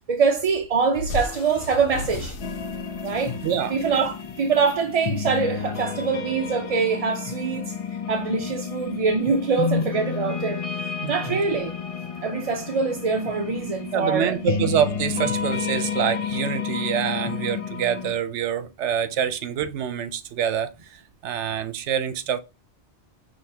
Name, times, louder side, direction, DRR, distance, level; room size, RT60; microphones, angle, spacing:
voice 1, 0.1-2.4 3.0-3.4 3.7-7.7 8.1-10.6 11.1-11.8 12.2-14.7, right 5 dB, 45° right, 0.5 m, -24 dB
sound 1, 1.0-5.3, left 3 dB, 90° left, 0.9 m, -36 dB
sound 2, 2.4-18.2, left 6 dB, 40° left, 0.5 m, -31 dB
voice 2, 3.4-3.8 11.0-11.4 13.9-22.4, right 9 dB, 80° right, 0.9 m, -26 dB
5.7 x 2.7 x 3.3 m
omnidirectional pair, 1.2 m